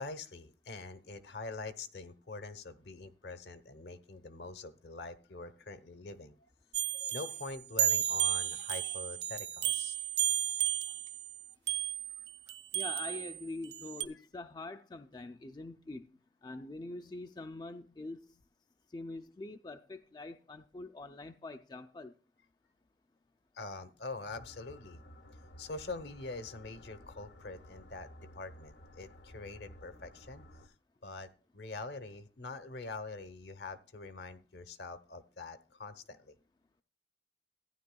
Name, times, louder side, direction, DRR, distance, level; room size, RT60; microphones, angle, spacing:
voice 1, 0.0-6.3 6.9-10.0 10.6-10.7 11.5-11.6 12.2-12.3 14.1-14.2 23.5-25.0 25.6-30.7 31.0-36.3, left 3 dB, 70° left, 0.9 m, -44 dB
sound 1, 6.7-14.1, right 11 dB, 70° right, 0.5 m, -33 dB
voice 2, 12.7-18.3 18.9-22.1, left 2 dB, 25° left, 0.4 m, -44 dB
sound 2, 24.3-30.7, left 1 dB, 90° left, 1.1 m, -54 dB
15.0 x 10.0 x 2.2 m
head